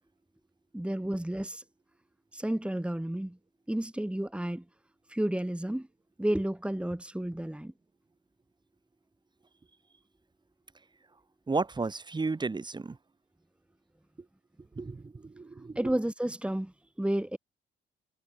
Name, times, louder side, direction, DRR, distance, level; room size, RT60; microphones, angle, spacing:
voice 1, 0.7-1.6 2.3-3.4 3.7-4.6 5.1-5.9 6.2-7.7 15.7-17.4, right 1 dB, 5° right, 4.6 m, -31 dB
voice 2, 11.5-13.0 14.7-16.0, right 3 dB, 20° right, 1.5 m, -33 dB
cardioid pair, 90°, 20 cm